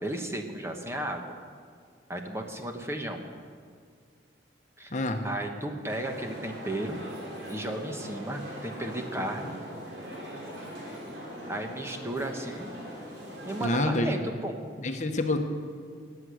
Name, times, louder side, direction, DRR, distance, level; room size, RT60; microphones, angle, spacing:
voice 1, 0.0-1.2 2.1-3.2 4.8-4.9 5.2-7.0 7.5-9.6 11.5-12.7 13.4-14.6, right 1 dB, 15° right, 4 dB, 1.1 m, -34 dB
sound 1, 5.9-13.9, equal, 70° right, 3.5 m, -41 dB
voice 2, 13.6-14.3 14.8-15.4, left 2 dB, 40° left, 5 dB, 1.0 m, -27 dB
19.0 x 8.4 x 6.3 m, 2.1 s
head